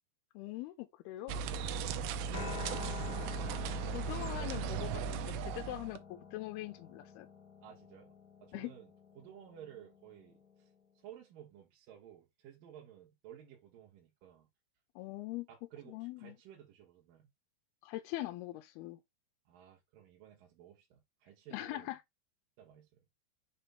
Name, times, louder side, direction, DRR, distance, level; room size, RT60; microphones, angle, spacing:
voice 1, 0.3-1.4 3.9-7.3 8.5-8.7 15.0-15.5 15.9-16.4 17.8-19.0 21.5-22.0, left 16 dB, 90° left, 2.7 m, -42 dB
sound 1, 1.3-6.0, right 5 dB, 85° right, 2.6 m, -37 dB
voice 2, 1.9-3.4 7.6-8.1 8.4-8.9 9.2-10.7 10.9-14.5 15.5-17.3 19.5-21.9 22.6-23.0, right 10 dB, 70° right, 2.8 m, -55 dB
Piano, 2.3-10.6, left 5 dB, 70° left, 0.9 m, -49 dB
6.8 x 3.2 x 5.6 m
omnidirectional pair, 4.4 m